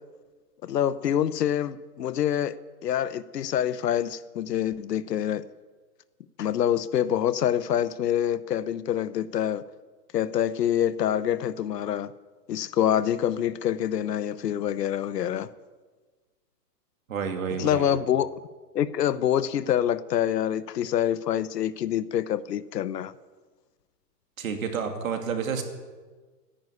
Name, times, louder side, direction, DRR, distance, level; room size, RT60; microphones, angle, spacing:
voice 1, 0.6-2.5 2.8-5.4 6.4-9.6 10.1-12.1 12.5-15.5 17.6-18.3 18.7-23.1, left 10 dB, 75° left, 16 dB, 0.9 m, -26 dB
voice 2, 17.1-17.9 24.4-25.6, right 6 dB, 55° right, 5 dB, 2.5 m, -30 dB
14.0 x 10.5 x 9.7 m, 1.4 s
hypercardioid pair, 180°, 49 cm